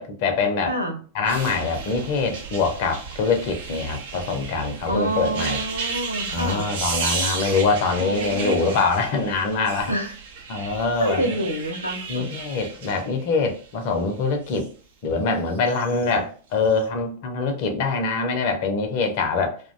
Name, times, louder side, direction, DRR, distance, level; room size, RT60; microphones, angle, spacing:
voice 1, 0.0-0.7 1.1-5.6 6.3-9.9 10.5-11.4 12.1-14.7 15.0-19.6, left 4 dB, 45° left, 0.6 m, -24 dB
voice 2, 0.7-1.0 4.9-6.7 8.0-8.8 9.9-10.1 10.5-10.7 11.0-12.3, right 1 dB, 90° left, 0.6 m, -27 dB
sound 1, 1.2-14.7 15.5-16.1 16.6-16.8, right 5 dB, 55° right, 0.6 m, -33 dB
2.5 x 2.1 x 2.5 m
figure-of-eight pair, 90°, 0 cm